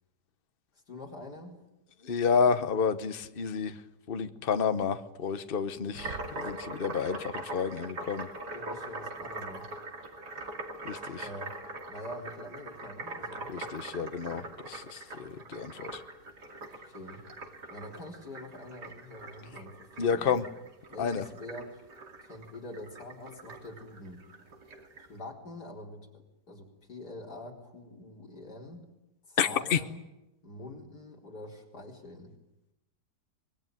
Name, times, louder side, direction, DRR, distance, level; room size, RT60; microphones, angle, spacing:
voice 1, 0.9-1.6 7.9-8.0 8.5-9.7 11.2-11.5 11.9-14.5 16.8-17.2 17.7-20.4 20.9-21.8 22.2-24.2 25.0-28.9 29.3-30.0 30.4-32.3, left 1 dB, 70° left, 0 dB, 4.9 m, -45 dB
voice 2, 2.0-3.8 4.1-8.3 10.8-11.3 13.5-16.0 20.0-20.4 21.0-21.2 29.4-29.8, left 6 dB, 35° left, 10 dB, 1.1 m, -30 dB
sound 1, 5.9-25.1, right 2 dB, 75° right, 3.3 m, -42 dB
24.5 x 21.5 x 9.3 m, 0.94 s
omnidirectional pair, 1.8 m